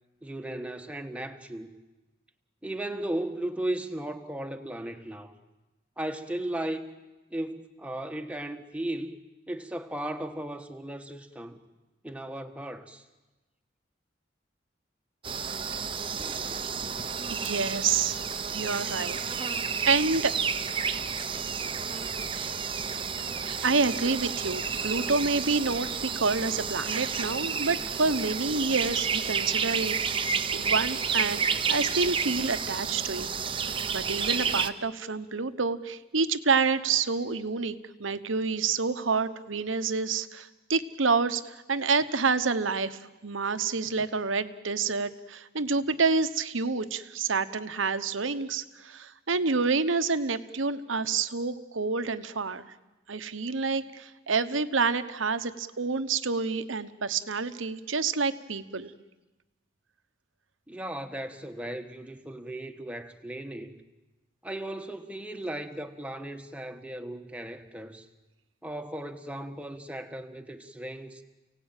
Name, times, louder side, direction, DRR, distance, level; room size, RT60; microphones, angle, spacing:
voice 1, 0.2-1.8 2.6-5.3 6.0-6.9 7.3-9.2 9.5-11.6 12.0-13.0 60.7-63.8 64.4-68.1 68.6-71.2, right 1 dB, 5° right, 1.3 m, -36 dB
sound 1, 15.2-34.7, right 6 dB, 25° right, 0.8 m, -31 dB
voice 2, 17.3-18.2 18.5-19.2 19.8-20.3 23.4-30.0 30.5-33.3 33.6-37.7 38.0-52.6 53.1-58.9, right 4 dB, 85° right, 1.1 m, -28 dB
29.5 x 17.5 x 9.1 m
head